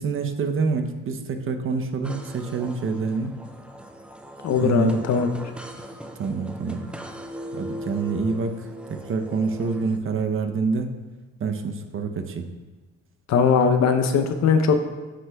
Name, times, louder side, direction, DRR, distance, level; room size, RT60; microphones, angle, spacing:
voice 1, 0.0-3.3 4.6-5.0 6.2-6.8 7.5-8.6 8.9-10.9 11.4-12.5, right 4 dB, 45° right, 6 dB, 0.7 m, -26 dB
sound 1, 2.0-10.0, equal, 5° right, 0.5 m, -39 dB
voice 2, 4.4-5.3 13.3-14.8, left 6 dB, 60° left, 7 dB, 0.7 m, -20 dB
9.2 x 6.4 x 2.3 m, 1.3 s
cardioid pair, 90°, 30 cm